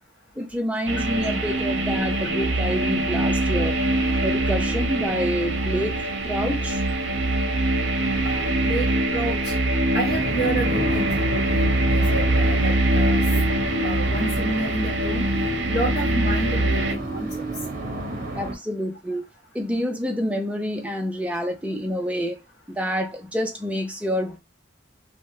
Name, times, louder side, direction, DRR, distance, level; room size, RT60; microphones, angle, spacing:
voice 1, 0.4-3.8 4.2-6.8 18.3-19.2 19.5-22.4 22.7-24.4, equal, 5° right, 0.5 m, -27 dB
sound 1, 0.9-16.9, right 1 dB, 70° right, 0.6 m, -23 dB
voice 2, 8.2-9.5 9.9-13.2 13.8-15.2 15.7-17.3, right 1 dB, 50° left, 0.8 m, -30 dB
sound 2, 10.1-18.6, right 2 dB, 45° right, 0.8 m, -33 dB
3.3 x 2.1 x 2.7 m
head